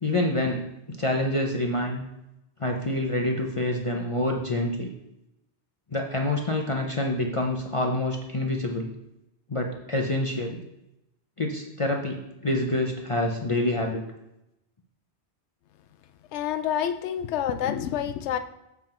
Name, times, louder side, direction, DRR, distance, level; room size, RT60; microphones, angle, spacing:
voice 1, 0.0-2.0 2.6-4.9 5.9-8.9 9.5-10.6 11.4-14.0, left 1 dB, 30° left, 0 dB, 0.8 m, -27 dB
voice 2, 16.3-18.4, left 9 dB, 80° left, 11 dB, 0.9 m, -28 dB
7.2 x 5.8 x 4.4 m, 0.89 s
omnidirectional pair, 1.2 m